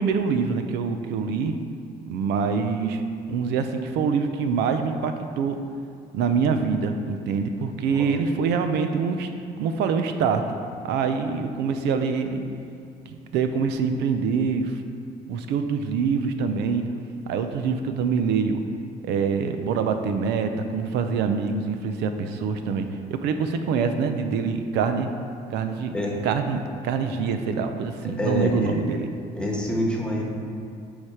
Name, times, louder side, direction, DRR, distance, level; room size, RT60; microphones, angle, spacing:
voice 1, 0.0-1.6 2.1-3.0 3.3-5.6 6.1-9.3 9.6-10.4 10.8-12.4 13.1-14.8 15.3-16.8 17.3-18.6 19.0-25.1 25.5-25.9 26.2-29.1, right 5 dB, 85° right, 7 dB, 0.6 m, -25 dB
voice 2, 28.2-28.8 29.3-30.2, left 1 dB, 5° left, -2 dB, 1.2 m, -26 dB
7.1 x 4.9 x 4.9 m, 2.5 s
cardioid pair, 110°, 17 cm